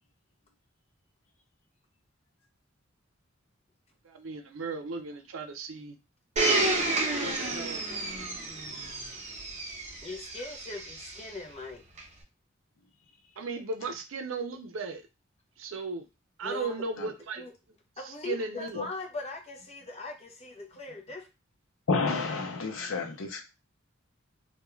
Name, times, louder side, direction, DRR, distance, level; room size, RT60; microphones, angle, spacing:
voice 1, 4.0-6.0 7.2-7.8 13.4-15.1 15.6-16.1 16.4-17.5 18.0-18.8, right 4 dB, 75° right, 0.5 m, -36 dB
Domestic sounds home sounds, 6.4-11.2 12.0-12.1, right 2 dB, 35° right, 0.6 m, -30 dB
voice 2, 10.0-11.8 16.4-16.8 17.4-17.5 18.0-21.3, left 3 dB, 30° left, 0.6 m, -40 dB
voice 3, 21.9-23.4, left 4 dB, 85° left, 0.6 m, -30 dB
2.3 x 2.2 x 3.0 m
head